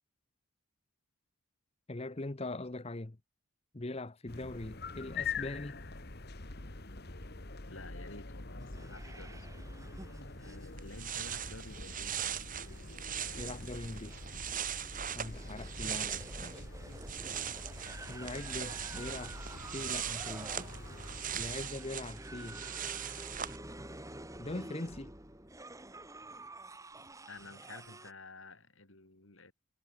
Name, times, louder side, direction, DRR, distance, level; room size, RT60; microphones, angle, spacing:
voice 1, 1.9-3.2 3.7-5.8 13.4-14.2 15.1-16.6 18.1-20.7 21.3-22.6 24.4-25.1, left 2 dB, 30° left, 0.8 m, -42 dB
sound 1, 4.3-21.7, left 4 dB, 45° left, 1.9 m, -45 dB
voice 2, 7.7-9.7 10.4-12.3 27.3-29.5, left 3 dB, 65° left, 4.6 m, -51 dB
sound 2, 8.6-28.1, right 1 dB, 15° right, 4.2 m, -49 dB
sound 3, 10.5-10.6 10.8-16.6 16.9-23.6, right 9 dB, 40° right, 2.5 m, -40 dB
head